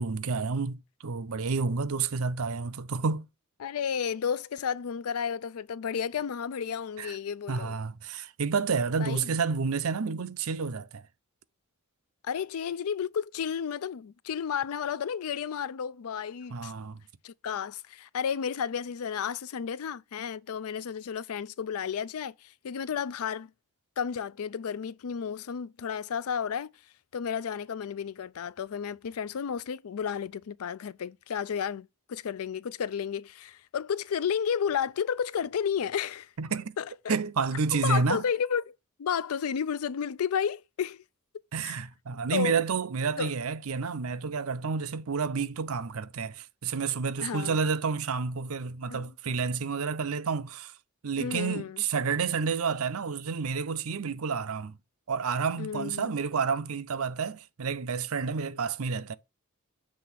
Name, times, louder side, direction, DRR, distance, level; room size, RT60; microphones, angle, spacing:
voice 1, 0.0-3.3 7.0-7.1 7.5-11.0 16.5-17.0 36.4-36.8 37.1-38.2 41.5-50.7 51.0-54.8 55.1-59.1, right 5 dB, 75° right, 0.6 m, -30 dB
voice 2, 3.6-7.8 9.0-9.4 12.2-16.7 17.2-23.5 24.0-26.7 27.1-36.3 36.8-37.2 37.7-41.0 41.6-41.8 42.3-42.6 43.2-43.3 47.2-47.6 48.9-49.1 51.2-51.8 55.6-56.2, left 7 dB, 80° left, 0.4 m, -32 dB
7.6 x 3.5 x 5.8 m
head